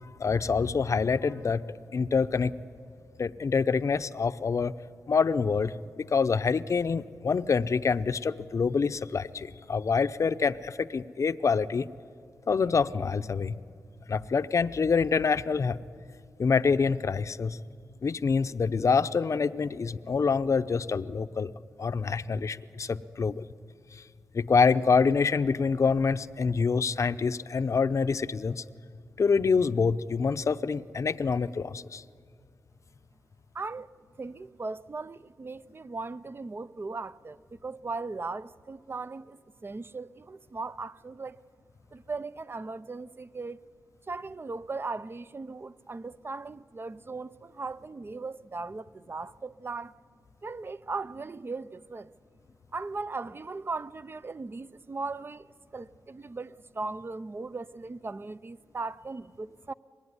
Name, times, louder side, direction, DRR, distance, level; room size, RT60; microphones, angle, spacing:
voice 1, 0.0-1.6 1.9-2.5 3.2-4.7 5.1-11.9 12.5-13.5 14.1-15.8 16.4-17.6 18.0-21.5 21.8-23.4 24.3-28.6 29.2-32.0, left 5 dB, 50° left, 0.7 m, -26 dB
voice 2, 33.5-33.9 34.2-41.4 41.9-43.6 44.1-49.9 50.4-52.1 52.7-55.5 55.7-59.7, right 3 dB, 35° right, 0.7 m, -38 dB
24.5 x 20.5 x 9.8 m
cardioid pair, 65°, 7 cm